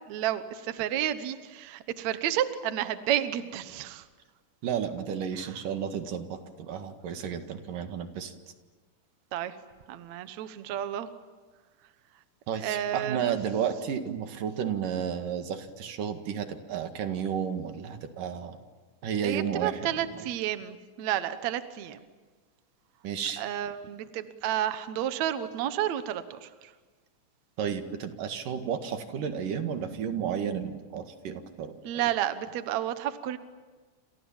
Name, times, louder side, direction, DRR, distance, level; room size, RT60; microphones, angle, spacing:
voice 1, 0.1-4.1 5.4-5.6 9.3-9.6 9.9-11.1 12.6-13.3 19.2-22.0 23.4-26.7 31.8-33.4, right 11 dB, 65° right, 11 dB, 2.3 m, -31 dB
voice 2, 4.6-8.3 12.5-18.6 19.0-19.7 23.0-23.4 27.6-31.7, right 8 dB, 90° right, 7 dB, 3.5 m, -32 dB
29.0 x 28.5 x 7.3 m, 1.4 s
omnidirectional pair, 3.7 m